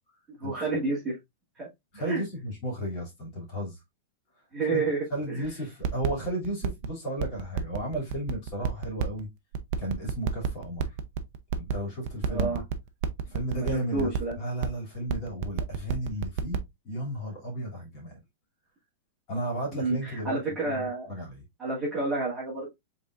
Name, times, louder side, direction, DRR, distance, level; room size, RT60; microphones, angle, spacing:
voice 1, 0.4-1.2 1.6-1.7 2.0-2.2 4.5-5.0 5.3-5.4 12.3-12.6 13.5-14.4 19.7-21.1 21.6-22.7, right 3 dB, 10° right, 1.9 m, -30 dB
voice 2, 1.9-3.8 4.7-4.8 5.1-9.3 9.8-10.8 11.5-12.6 13.2-16.6 16.8-18.2 19.3-21.4, right 1 dB, 30° left, 2.7 m, -34 dB
sound 1, 5.4-5.5 5.8-6.9 7.2-9.2 9.5-11.7 12.1-14.3 14.6-14.7 15.0-16.6, right 8 dB, 35° right, 0.6 m, -28 dB
5.4 x 3.7 x 2.5 m
supercardioid pair, 175°, 0 cm